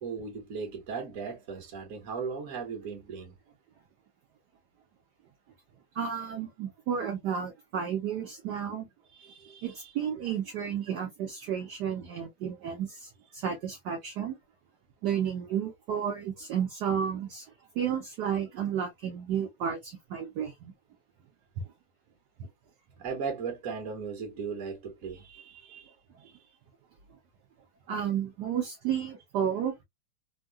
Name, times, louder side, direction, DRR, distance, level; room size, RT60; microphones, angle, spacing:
voice 1, 0.0-3.4 9.1-9.9 23.0-25.9 26.2-26.4, right 5 dB, 50° right, 1.3 m, -37 dB
voice 2, 5.9-8.9 9.6-14.4 15.0-20.7 22.4-22.5 27.9-29.8, right 8 dB, 70° right, 1.1 m, -32 dB
3.6 x 2.2 x 2.2 m
omnidirectional pair, 2.2 m